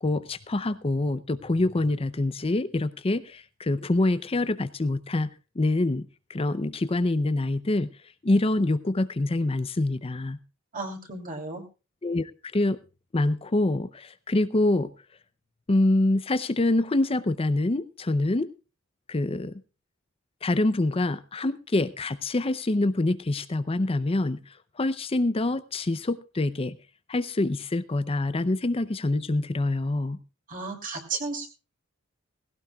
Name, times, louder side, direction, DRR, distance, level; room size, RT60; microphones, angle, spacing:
voice 1, 0.0-5.3 5.6-6.0 6.3-7.9 8.2-10.4 12.0-12.8 13.1-14.9 15.7-18.5 19.1-19.5 20.4-24.4 24.8-26.8 27.1-30.2, left 2 dB, 25° left, 14 dB, 0.6 m, -25 dB
voice 2, 10.7-11.6 30.5-31.5, right 3 dB, 40° right, 3 dB, 2.9 m, -34 dB
18.0 x 17.0 x 2.3 m, 0.31 s
head